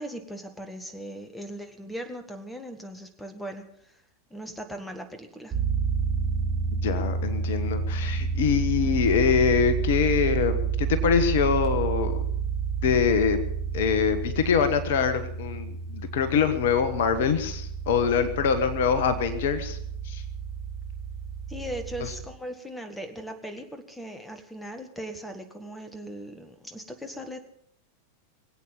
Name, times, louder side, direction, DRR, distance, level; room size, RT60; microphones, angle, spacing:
voice 1, 0.0-4.0 4.3-5.6 21.5-27.4, equal, 5° left, 8 dB, 1.8 m, -39 dB
sound 1, 5.5-22.2, right 6 dB, 20° right, 3.9 m, -30 dB
voice 2, 6.8-12.2 12.8-13.4 13.7-19.8 20.0-20.2, left 6 dB, 55° left, 11 dB, 1.3 m, -24 dB
22.0 x 8.6 x 7.1 m, 0.68 s
figure-of-eight pair, 90°, 0 cm